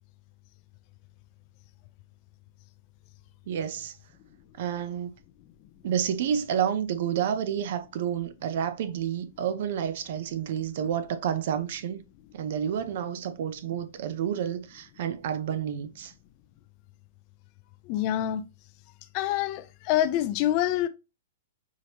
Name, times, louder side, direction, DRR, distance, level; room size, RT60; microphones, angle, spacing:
voice 1, 3.5-3.9 4.6-5.1 5.8-12.0 12.3-16.1, right 9 dB, 60° right, 0.5 m, -30 dB
voice 2, 17.9-18.4 19.1-20.9, left 12 dB, 40° left, 0.4 m, -26 dB
4.9 x 2.8 x 2.8 m
hypercardioid pair, 135°, 0 cm